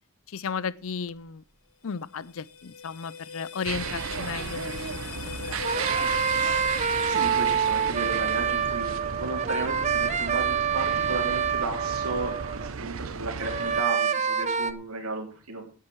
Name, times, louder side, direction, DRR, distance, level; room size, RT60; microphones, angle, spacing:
voice 1, 0.3-1.4 1.8-5.8, left 6 dB, 65° left, 0.5 m, -35 dB
sound 1, 1.9-8.9, left 5 dB, 85° left, 1.6 m, -41 dB
sound 2, 3.6-13.8, right 6 dB, 65° right, 0.7 m, -35 dB
sound 3, 5.6-12.7 13.4-14.7, right 7 dB, 30° right, 0.7 m, -27 dB
voice 2, 7.0-15.6, right 3 dB, 90° right, 3.5 m, -34 dB
10.0 x 9.8 x 5.7 m
head